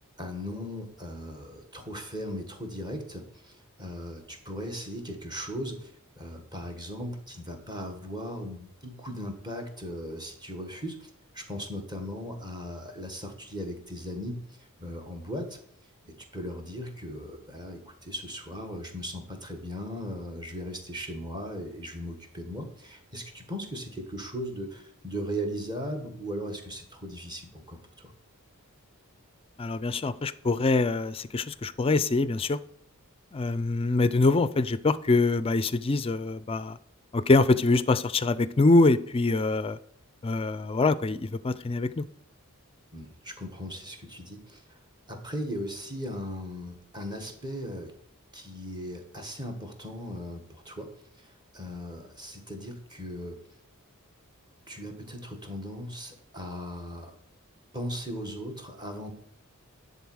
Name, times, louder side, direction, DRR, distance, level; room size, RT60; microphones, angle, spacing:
voice 1, 0.2-5.9 6.2-15.6 16.0-28.1 42.9-44.8 45.1-47.9 48.3-50.9 51.2-53.4 54.7-57.2 57.7-59.1, equal, 20° right, 4 dB, 1.6 m, -38 dB
voice 2, 29.6-32.6 33.3-36.8 37.1-39.8 40.2-42.1, left 3 dB, 25° left, 15 dB, 0.4 m, -24 dB
10.5 x 4.0 x 6.2 m, 0.70 s
head